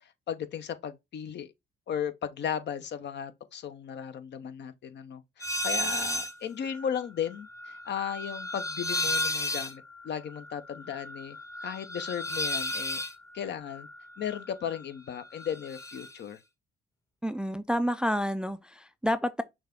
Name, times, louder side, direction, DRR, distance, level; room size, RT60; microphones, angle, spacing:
voice 1, 0.0-1.5 1.9-11.4 11.6-13.0 13.3-13.9 14.2-16.4, left 8 dB, 60° left, 0.7 m, -36 dB
sound 1, 5.4-6.3 6.7-14.8 15.1-16.1, left 1 dB, 15° left, 0.8 m, -34 dB
voice 2, 17.2-19.4, equal, 5° right, 0.3 m, -29 dB
6.2 x 2.3 x 3.5 m
cardioid pair, 90°, 20 cm